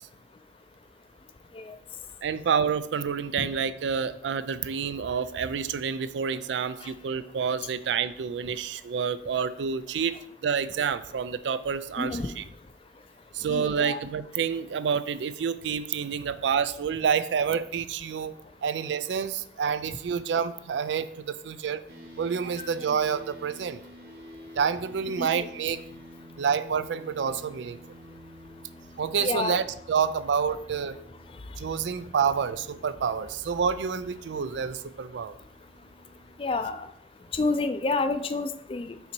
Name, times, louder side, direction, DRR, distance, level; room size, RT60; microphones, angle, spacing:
voice 1, 2.2-10.2 10.4-12.4 13.3-18.3 18.6-21.8 22.2-23.8 24.6-25.8 26.4-27.8 29.0-31.0 31.6-35.4, right 6 dB, 85° right, 13 dB, 0.4 m, -28 dB
voice 2, 12.0-12.3 13.5-14.0 22.8-23.0 25.2-25.5 29.2-29.6 36.4-36.9 37.3-39.0, left 3 dB, 30° left, 9 dB, 0.4 m, -29 dB
sound 1, 21.9-36.9, equal, 60° right, 1.8 m, -49 dB
5.7 x 4.0 x 4.5 m, 0.73 s
head